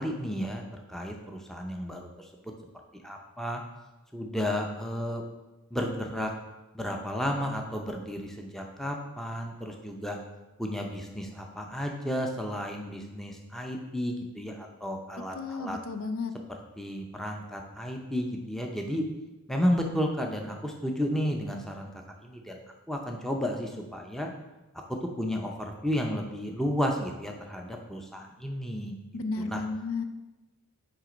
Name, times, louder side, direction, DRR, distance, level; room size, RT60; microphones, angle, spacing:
voice 1, 0.0-2.5 3.0-3.6 4.1-5.2 5.7-6.3 6.7-10.2 10.6-15.8 16.5-19.0 19.5-22.6 22.9-24.3 24.9-29.0 29.4-29.6, equal, ahead, 1 dB, 0.6 m, -32 dB
voice 2, 15.3-16.3 29.1-30.0, left 3 dB, 70° left, 8 dB, 0.5 m, -33 dB
8.1 x 3.3 x 5.0 m, 1.1 s
head